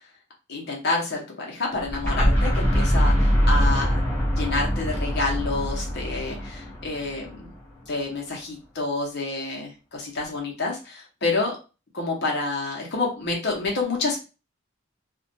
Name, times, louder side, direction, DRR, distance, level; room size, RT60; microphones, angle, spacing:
voice 1, 0.5-4.1 4.3-7.5 7.9-11.6 11.9-14.2, left 3 dB, 55° left, -1 dB, 0.7 m, -28 dB
sound 1, 1.8-7.6, equal, 10° left, 0.6 m, -23 dB
2.4 x 2.2 x 2.6 m, 0.31 s
head